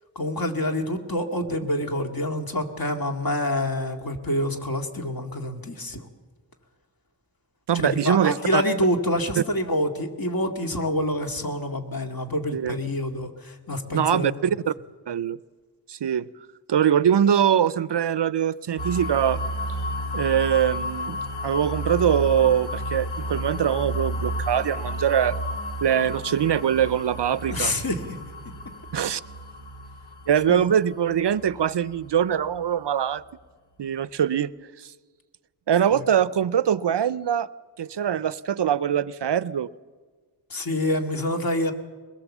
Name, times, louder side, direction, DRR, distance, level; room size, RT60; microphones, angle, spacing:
voice 1, 0.2-6.1 7.7-14.3 27.5-28.2 30.5-30.7 35.9-36.0 40.5-41.7, left 1 dB, 50° left, 4 dB, 2.1 m, -27 dB
voice 2, 7.7-8.6 9.4-9.5 12.5-12.8 13.9-14.7 15.1-15.4 15.9-16.3 16.7-19.4 20.1-25.4 25.8-27.7 28.9-29.2 30.3-33.2 33.8-34.5 35.7-37.5 37.8-39.7, right 9 dB, 65° right, 17 dB, 0.6 m, -23 dB
sound 1, 18.8-32.6, equal, 80° left, 1.7 m, -32 dB
22.5 x 20.5 x 7.2 m, 1.5 s
wide cardioid pair, 100°, 46 cm